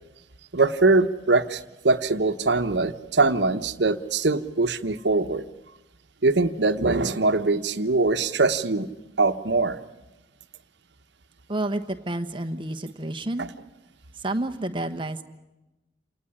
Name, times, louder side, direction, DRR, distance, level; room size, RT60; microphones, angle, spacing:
voice 1, 0.5-5.4 6.2-8.9 9.2-9.8 13.4-13.5, right 3 dB, 75° right, 9 dB, 1.1 m, -22 dB
voice 2, 11.5-13.5 14.2-15.2, right 1 dB, 25° right, 6 dB, 1.2 m, -29 dB
28.0 x 19.0 x 9.9 m, 1.0 s
head